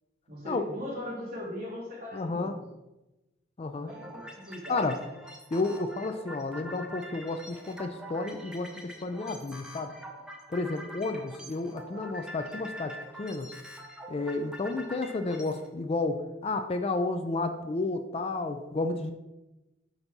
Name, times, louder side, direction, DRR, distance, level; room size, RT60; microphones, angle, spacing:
voice 1, 0.3-2.6 3.8-5.0, left 1 dB, 50° right, -5 dB, 2.4 m, -39 dB
voice 2, 2.1-2.5 3.6-3.9 4.7-4.9 5.5-9.9 10.5-13.5 14.1-19.1, left 3 dB, 30° left, 7 dB, 0.3 m, -31 dB
sound 1, 3.9-15.7, equal, 5° right, 0.7 m, -45 dB
5.3 x 4.0 x 6.0 m, 1.0 s
head